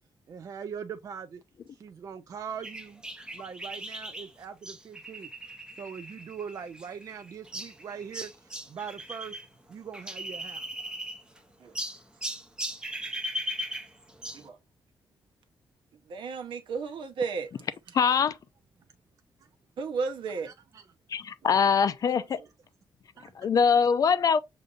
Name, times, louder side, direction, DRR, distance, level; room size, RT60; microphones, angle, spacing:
voice 1, 0.3-1.4 1.8-3.0 3.3-5.3 5.8-9.4 9.7-10.7 20.5-20.8 23.2-23.3, right 7 dB, 40° right, 0.3 m, -41 dB
sound 1, 2.6-9.5 9.7-11.4 11.7-14.5, equal, 10° right, 0.7 m, -38 dB
voice 2, 16.1-17.7 19.8-20.5, right 5 dB, 75° right, 0.9 m, -33 dB
voice 3, 17.9-18.4 21.1-22.4 23.4-24.4, left 6 dB, 45° left, 0.4 m, -23 dB
6.4 x 2.6 x 2.4 m
wide cardioid pair, 160°, 8 cm